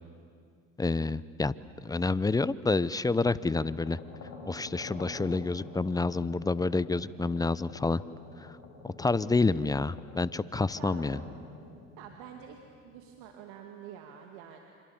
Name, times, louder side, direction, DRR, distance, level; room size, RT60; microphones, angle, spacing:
voice 1, 0.8-1.5 1.8-4.0 4.5-8.0 8.4-8.5 8.8-11.2, left 3 dB, 10° left, 19 dB, 0.6 m, -28 dB
sound 1, 3.5-13.2, left 4 dB, 50° left, 6.5 m, -48 dB
voice 2, 12.0-12.6 12.8-14.6, right 9 dB, 65° right, 3 dB, 2.3 m, -47 dB
28.5 x 25.5 x 7.2 m, 2.2 s
hypercardioid pair, 75°, 38 cm